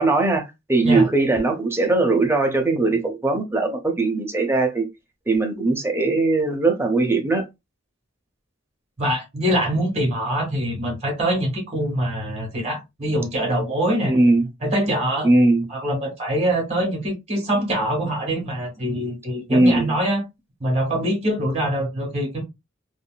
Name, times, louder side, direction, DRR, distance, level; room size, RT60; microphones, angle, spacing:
voice 1, 0.0-4.9 5.3-7.4 14.1-14.5 15.2-15.6 19.5-19.9, right 2 dB, 10° right, 0.7 m, -20 dB
voice 2, 9.0-14.2 14.6-15.3 15.7-20.2 20.6-22.4, right 1 dB, 35° right, 1.7 m, -24 dB
3.6 x 2.4 x 2.2 m
head